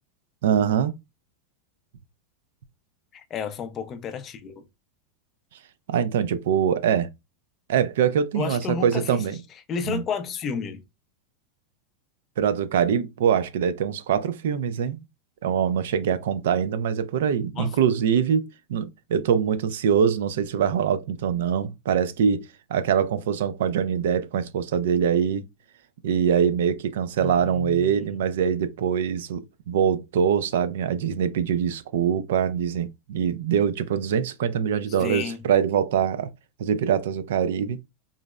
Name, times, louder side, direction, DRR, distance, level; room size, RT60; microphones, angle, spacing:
voice 1, 0.4-0.9 5.9-7.1 7.7-9.4 9.8-10.0 12.4-15.0 15.4-25.5 26.0-36.3 36.6-37.8, right 8 dB, 80° right, 0.3 m, -23 dB
voice 2, 3.1-4.6 8.3-9.2 9.7-10.8 17.6-17.8 27.2-28.1 35.0-35.4, left 6 dB, 25° left, 0.4 m, -31 dB
3.8 x 2.0 x 2.2 m
supercardioid pair, 155°, 0 cm